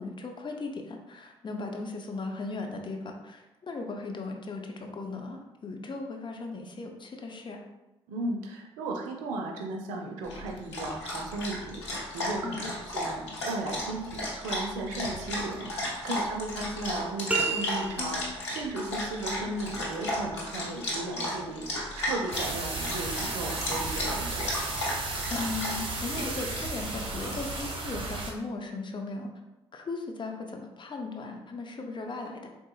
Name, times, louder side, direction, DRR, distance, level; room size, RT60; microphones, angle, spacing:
voice 1, 0.0-7.6 12.4-12.7 16.1-16.3 18.0-18.3 25.3-29.3 29.7-32.5, left 3 dB, 35° left, 3 dB, 0.6 m, -37 dB
voice 2, 8.1-12.7 12.9-24.5, right 2 dB, 70° right, 2 dB, 0.5 m, -36 dB
Dog, 10.2-27.6, left 1 dB, 90° left, 0.5 m, -34 dB
sound 1, 17.3-18.4, right 4 dB, 10° right, 0.8 m, -30 dB
sound 2, 22.3-28.3, right 3 dB, 40° right, 0.8 m, -34 dB
3.7 x 2.5 x 2.4 m, 0.98 s
hypercardioid pair, 45°, 14 cm